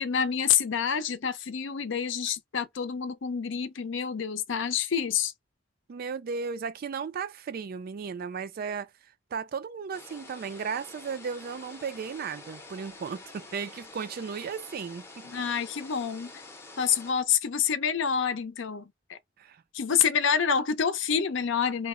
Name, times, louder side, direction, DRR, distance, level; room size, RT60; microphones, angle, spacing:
voice 1, 0.0-5.3 15.2-16.4 16.8-19.2 19.7-21.9, left 7 dB, 65° left, 0.5 m, -27 dB
voice 2, 5.9-15.3 19.4-19.6, right 6 dB, 50° right, 0.3 m, -35 dB
sound 1, 9.9-17.1, left 3 dB, 15° left, 0.6 m, -47 dB
2.9 x 2.0 x 3.6 m
head